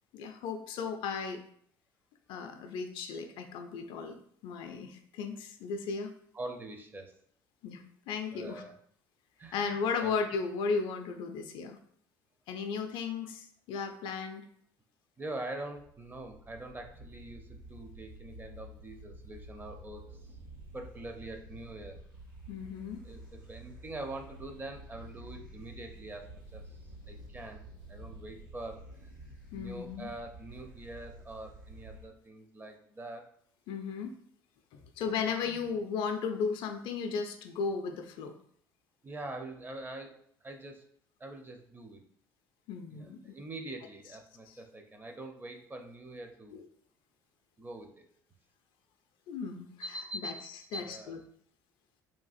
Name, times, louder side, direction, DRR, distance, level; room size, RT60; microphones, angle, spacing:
voice 1, 0.1-1.4 2.3-4.2 4.4-6.1 7.6-8.6 9.5-11.8 12.5-14.4 22.5-23.0 29.5-30.1 33.7-34.2 35.0-38.3 42.7-43.3 44.5-44.6 46.5-46.6 49.3-49.7 50.1-51.2, left 5 dB, 50° left, 7 dB, 0.3 m, -35 dB
voice 2, 6.3-7.1 8.3-8.8 9.4-10.1 15.2-20.4 20.7-22.0 23.0-26.3 26.5-26.6 27.1-27.6 27.9-28.9 29.5-33.3 35.5-35.6 39.0-40.2 40.4-40.8 41.2-42.0 42.9-46.6 47.6-48.0 49.8-51.2, right 2 dB, 20° right, 4 dB, 0.5 m, -44 dB
sound 1, 15.7-32.1, right 1 dB, 90° right, 0.7 m, -50 dB
3.1 x 2.4 x 2.4 m, 0.63 s
figure-of-eight pair, 60°, 11 cm